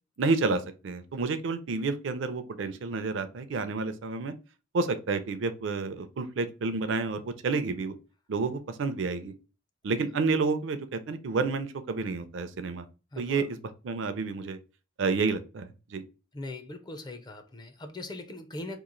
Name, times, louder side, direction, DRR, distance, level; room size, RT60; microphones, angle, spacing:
voice 1, 0.2-4.3 4.7-8.0 8.3-9.3 9.8-12.9 13.2-13.6 13.8-14.6 15.0-16.0, right 4 dB, 65° right, 0.5 m, -30 dB
voice 2, 13.1-13.5 16.3-18.8, left 2 dB, 20° left, 0.5 m, -40 dB
3.0 x 2.4 x 3.8 m
head